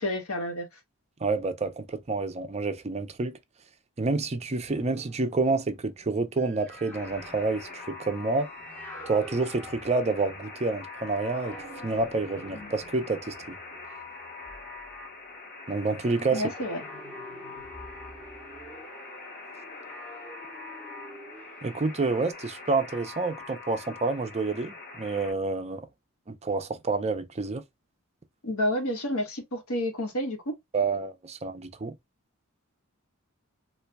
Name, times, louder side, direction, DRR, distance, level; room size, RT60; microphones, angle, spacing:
voice 1, 0.0-0.7 16.3-16.8 28.4-30.5, left 1 dB, 80° left, 1.4 m, -29 dB
voice 2, 1.2-3.4 4.0-8.5 9.1-11.6 11.8-13.6 15.7-16.4 21.6-25.9 26.3-27.6 30.7-31.9, right 3 dB, 30° right, 0.5 m, -28 dB
sound 1, 4.7-10.6 11.1-15.0 15.8-22.3, equal, 10° left, 1.2 m, -47 dB
Alarm, 6.9-25.3, left 3 dB, 45° left, 1.2 m, -44 dB
4.3 x 2.5 x 2.2 m
head